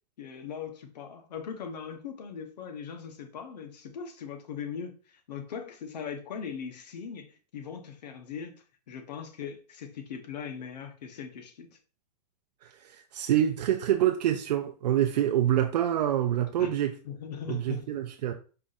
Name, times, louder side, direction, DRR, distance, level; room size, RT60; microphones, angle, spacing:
voice 1, 0.2-8.6 8.9-11.8 16.6-16.8 17.0-17.9, left 7 dB, 85° left, 1.0 m, -40 dB
voice 2, 12.6-16.9 17.5-18.3, right 11 dB, 80° right, 0.5 m, -26 dB
4.7 x 2.5 x 4.0 m
supercardioid pair, 175°, 21 cm